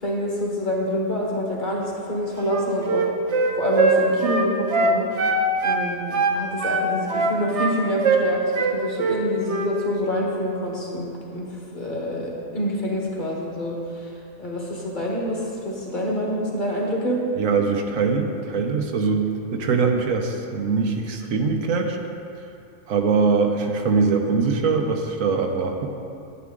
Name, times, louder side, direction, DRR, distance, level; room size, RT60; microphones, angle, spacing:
voice 1, 0.0-3.1 3.6-5.1 5.6-14.1 14.4-17.2, left 1 dB, 40° left, -3 dB, 1.5 m, -26 dB
Wind instrument woodwind instrument, 2.4-5.8 6.1-7.7 8.0-8.3 8.6-9.2 9.5-9.7, right 4 dB, 60° right, 1.1 m, -21 dB
voice 2, 17.4-22.0 22.9-25.9, right 4 dB, 80° right, 4 dB, 1.2 m, -22 dB
9.6 x 9.5 x 3.7 m, 2.6 s
omnidirectional pair, 1.4 m